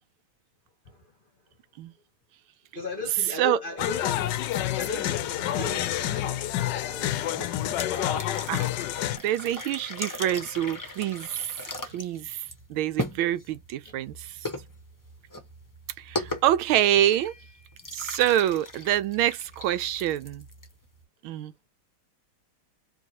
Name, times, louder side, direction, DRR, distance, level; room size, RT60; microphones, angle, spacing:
voice 1, 2.7-4.2 4.8-7.1 7.8-8.1 13.8-13.9, left 2 dB, 35° left, 0.9 m, -37 dB
sound 1, 3.8-9.2, left 12 dB, 75° left, 1.1 m, -28 dB
sound 2, 7.3-21.0, left 1 dB, 20° left, 0.5 m, -39 dB
voice 2, 9.2-14.5 16.0-17.3 17.9-20.4 21.2-21.5, right 12 dB, 90° right, 1.4 m, -26 dB
4.6 x 3.0 x 2.9 m
omnidirectional pair, 2.2 m